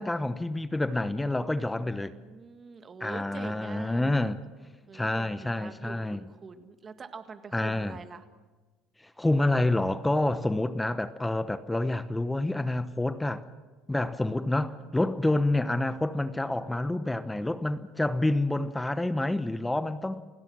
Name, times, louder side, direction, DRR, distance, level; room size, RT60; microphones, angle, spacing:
voice 1, 0.0-2.1 3.0-4.4 4.9-6.2 7.5-8.0 9.2-13.4 13.9-20.2, left 2 dB, 10° left, 1.0 m, -28 dB
voice 2, 1.8-4.3 4.9-8.3 14.8-14.9 19.8-20.2, right 5 dB, 35° right, 1.9 m, -45 dB
29.0 x 17.0 x 6.1 m
supercardioid pair, 80°, 0 cm